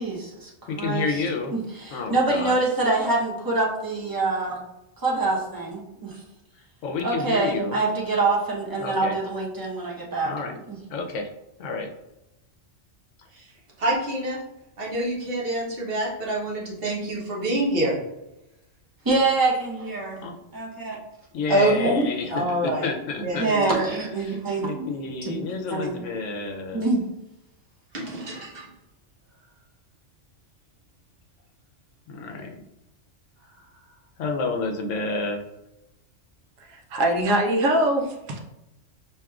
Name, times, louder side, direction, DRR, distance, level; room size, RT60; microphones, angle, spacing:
voice 1, 0.0-1.2 1.5-4.6 5.0-6.2 7.0-10.3 10.7-10.8 19.0-20.2 20.5-21.0 21.7-22.0 23.4-24.9 25.2-25.3 25.7-26.0 26.7-27.0, right 3 dB, 20° right, -4 dB, 0.7 m, -25 dB
voice 2, 0.7-1.5 1.9-2.6 6.8-7.7 8.8-9.2 10.2-10.6 10.9-11.3 11.6-11.9 20.2-20.3 21.3-23.5 24.2-26.8 32.1-32.5 34.2-35.4, left 4 dB, 75° left, 3 dB, 0.9 m, -30 dB
voice 3, 13.8-14.4 14.8-18.0 21.5-22.0 22.3-22.9 23.2-23.7 27.9-28.7, right 1 dB, 50° right, -3 dB, 1.1 m, -26 dB
voice 4, 36.6-38.4, right 1 dB, 80° right, 3 dB, 1.0 m, -23 dB
4.8 x 2.9 x 2.3 m, 0.92 s
omnidirectional pair, 1.3 m